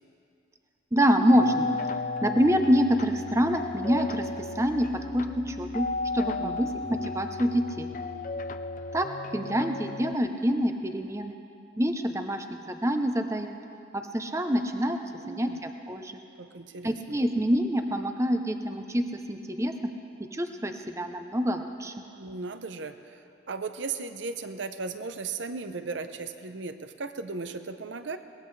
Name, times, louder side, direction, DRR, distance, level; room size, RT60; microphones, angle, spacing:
voice 1, 0.9-1.7 2.2-4.3 4.6-5.9 6.1-7.9 8.9-9.1 9.3-11.3 11.8-13.5 13.9-15.0 15.3-16.1 16.8-19.9 20.3-21.9, equal, 15° right, 6 dB, 0.7 m, -26 dB
sound 1, 1.3-10.1, left 3 dB, 40° left, 0.4 m, -35 dB
voice 2, 6.4-6.8 15.2-15.6 16.4-17.2 22.1-23.2 23.5-28.2, right 4 dB, 75° right, 9 dB, 0.7 m, -36 dB
22.0 x 19.0 x 3.3 m, 2.5 s
head